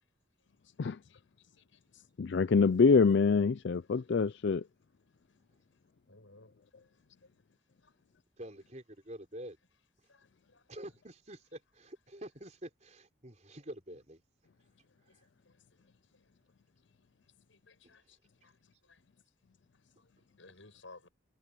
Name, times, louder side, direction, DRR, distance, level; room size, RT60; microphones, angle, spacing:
voice 1, 2.2-4.6, left 5 dB, 60° left, 0.4 m, -25 dB
voice 2, 6.1-6.5 10.1-10.2 17.5-18.0 18.9-19.0 20.4-21.1, left 3 dB, 80° left, 6.7 m, -55 dB
voice 3, 8.4-9.6 10.7-14.2 17.8-17.9, right 1 dB, 35° right, 4.8 m, -47 dB
head